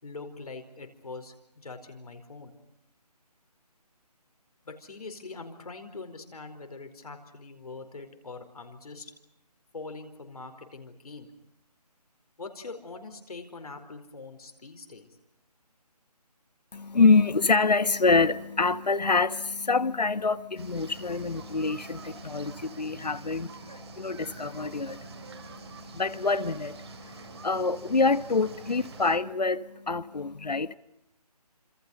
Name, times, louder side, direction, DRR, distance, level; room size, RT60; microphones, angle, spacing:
voice 1, 0.0-2.5 4.6-9.1 9.7-11.3 12.4-15.1, left 3 dB, 65° left, 4.7 m, -43 dB
voice 2, 16.7-30.8, left 4 dB, 85° left, 1.3 m, -26 dB
sound 1, 20.6-29.2, right 5 dB, 40° right, 3.5 m, -46 dB
29.5 x 27.0 x 5.4 m
figure-of-eight pair, 165°, 21 cm